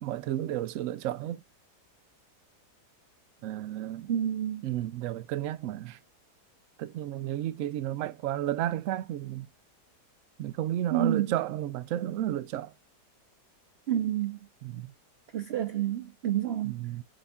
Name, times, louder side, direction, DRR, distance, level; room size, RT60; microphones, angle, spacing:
voice 1, 0.0-1.4 3.4-4.1 4.6-6.0 6.8-9.5 10.4-12.7 14.6-14.9 16.6-17.0, right 13 dB, 65° right, 0.8 m, -32 dB
voice 2, 4.1-4.6 10.9-11.3 13.9-14.4 15.3-16.8, right 10 dB, 90° right, 0.5 m, -29 dB
7.7 x 2.6 x 2.3 m
omnidirectional pair, 1.8 m